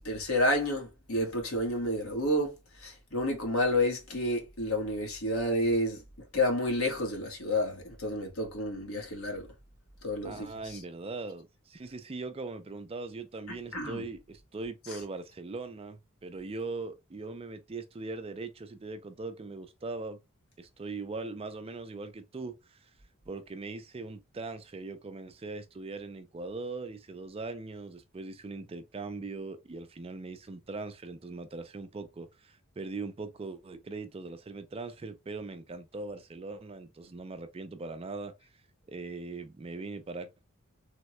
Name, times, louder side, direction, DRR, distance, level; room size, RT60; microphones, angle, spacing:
voice 1, 0.0-6.0 6.3-9.5 10.0-10.8 13.7-14.0 14.9-15.0, left 1 dB, 80° left, 1.3 m, -30 dB
voice 2, 10.2-20.2 20.6-22.9 23.3-38.3 38.9-40.4, right 3 dB, 25° right, 0.4 m, -40 dB
3.5 x 2.2 x 2.9 m
head